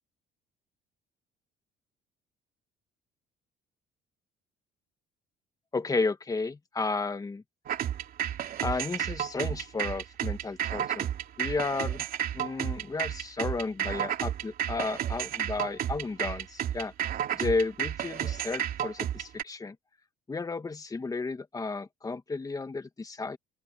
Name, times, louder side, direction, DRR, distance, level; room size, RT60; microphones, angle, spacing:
voice 1, 5.7-7.4 8.6-11.1 11.4-12.1 12.3-16.9 17.3-19.8 20.3-23.4, left 3 dB, 20° left, 1.8 m, -33 dB
sound 1, 7.7-19.4, right 10 dB, 60° right, 2.8 m, -32 dB
open air
cardioid pair, 110°, 17 cm